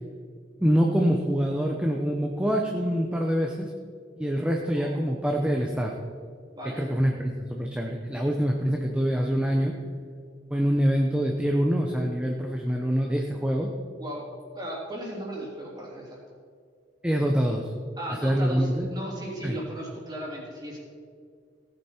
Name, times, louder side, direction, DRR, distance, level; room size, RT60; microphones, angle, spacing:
voice 1, 0.6-3.7 4.2-5.9 6.8-9.7 10.5-13.7 17.0-17.7 18.2-18.9 19.4-19.6, equal, 5° right, 1 dB, 0.8 m, -25 dB
voice 2, 6.5-6.9 14.0-14.2 14.5-16.2 18.0-20.8, right 1 dB, 20° right, -3 dB, 3.2 m, -36 dB
17.5 x 9.2 x 4.5 m, 2.1 s
head